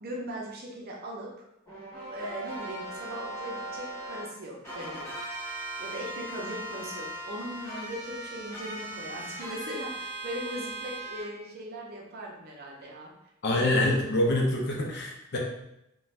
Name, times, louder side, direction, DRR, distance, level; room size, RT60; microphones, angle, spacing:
voice 1, 0.0-1.3 2.1-5.1 5.8-13.1 13.5-14.0, equal, 45° right, -1 dB, 0.6 m, -39 dB
sound 1, 1.7-4.2 4.6-11.2, right 1 dB, 15° left, 1.0 m, -38 dB
voice 2, 13.4-15.4, left 1 dB, 50° left, -1 dB, 0.5 m, -25 dB
2.5 x 2.2 x 3.2 m, 0.83 s
head